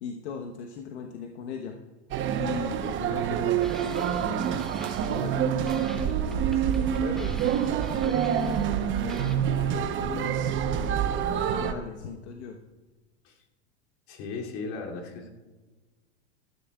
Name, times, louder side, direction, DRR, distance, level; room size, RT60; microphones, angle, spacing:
voice 1, 0.0-1.8 2.4-4.5 4.8-7.4 7.9-12.6, left 6 dB, 80° left, 3 dB, 1.2 m, -39 dB
sound 1, 2.1-11.7, right 9 dB, 35° right, 0.9 m, -27 dB
sound 2, 3.6-5.4 5.7-8.8 9.1-9.3, equal, ahead, 1.0 m, -47 dB
voice 2, 14.1-15.3, left 4 dB, 55° left, -1 dB, 3.0 m, -36 dB
17.0 x 14.0 x 2.4 m, 1.3 s
hypercardioid pair, 115°, 33 cm